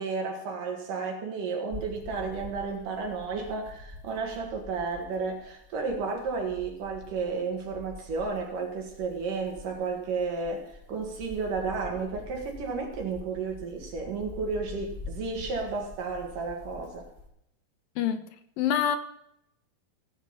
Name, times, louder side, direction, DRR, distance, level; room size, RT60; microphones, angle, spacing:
voice 1, 0.0-17.1, right 4 dB, 65° right, 2 dB, 3.4 m, -32 dB
sound 1, 1.7-17.3, left 2 dB, 10° right, 1.4 m, -46 dB
voice 2, 18.0-18.3 18.6-19.0, left 9 dB, 80° left, 9 dB, 2.4 m, -25 dB
17.0 x 8.4 x 5.5 m, 0.77 s
omnidirectional pair, 4.2 m